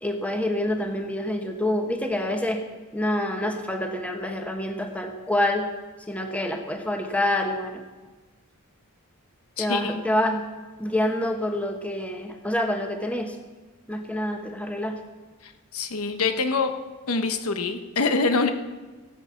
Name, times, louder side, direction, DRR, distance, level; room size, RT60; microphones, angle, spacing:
voice 1, 0.0-2.6 2.9-5.7 6.1-7.8 9.6-10.4 10.8-13.4 13.9-15.0, left 1 dB, 5° left, 4 dB, 1.2 m, -27 dB
voice 2, 9.6-9.9 15.4-16.7 17.1-18.5, left 4 dB, 85° left, 7 dB, 1.0 m, -25 dB
17.5 x 8.0 x 5.8 m, 1.3 s
head